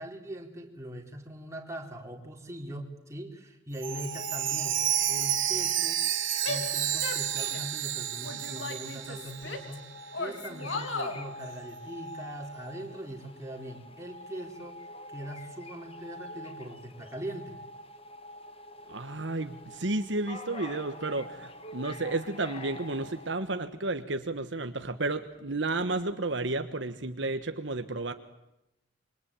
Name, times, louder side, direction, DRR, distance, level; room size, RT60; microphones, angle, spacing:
voice 1, 0.0-4.8 5.1-6.0 6.5-9.9 10.2-14.8 15.1-17.6, right 1 dB, 15° right, 1 dB, 4.2 m, -41 dB
sound 1, 3.8-23.3, left 1 dB, 30° left, 1.7 m, -45 dB
Chime, 3.8-9.7 10.0-10.1 10.7-10.8, right 12 dB, 85° right, 2.9 m, -30 dB
Female speech woman speaking / Yell, 6.4-7.7 8.2-9.8 10.1-11.2, left 3 dB, 70° left, 3.3 m, -36 dB
voice 2, 18.9-28.1, right 2 dB, 70° right, 8 dB, 1.4 m, -32 dB
27.0 x 23.5 x 9.0 m, 0.88 s
head